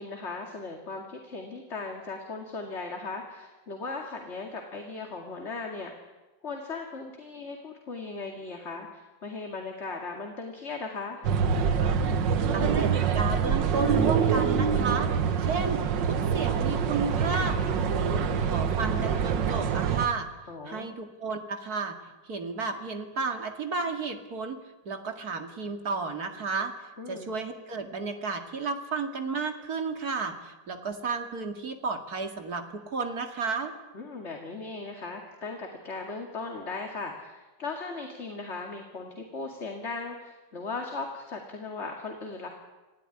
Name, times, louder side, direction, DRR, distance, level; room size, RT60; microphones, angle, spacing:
voice 1, 0.0-6.1 6.4-11.3 20.5-20.9 27.0-27.3 33.9-42.5, left 3 dB, 35° left, 2 dB, 2.5 m, -38 dB
sound 1, 11.2-20.1, right 6 dB, 70° right, 1.9 m, -25 dB
voice 2, 12.5-15.1 15.4-17.6 17.9-20.3 20.6-22.0 22.2-24.6 24.9-26.7 27.1-33.7, right 4 dB, 50° right, 6 dB, 2.6 m, -32 dB
27.5 x 17.0 x 9.9 m, 1.2 s
omnidirectional pair, 2.1 m